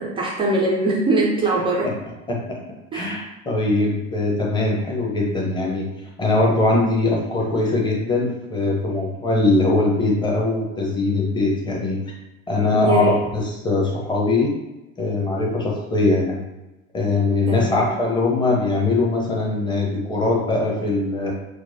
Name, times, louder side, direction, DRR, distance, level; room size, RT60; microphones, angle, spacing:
voice 1, 0.0-1.9 2.9-3.2 12.7-13.1 17.5-17.9, right 2 dB, 15° right, -3 dB, 0.4 m, -22 dB
voice 2, 2.3-2.6 2.9-5.9 6.2-12.0 12.5-14.5 15.0-16.4 16.9-21.3, left 2 dB, 10° left, -2 dB, 0.8 m, -21 dB
6.0 x 2.1 x 2.7 m, 1.0 s
figure-of-eight pair, 80°, 41 cm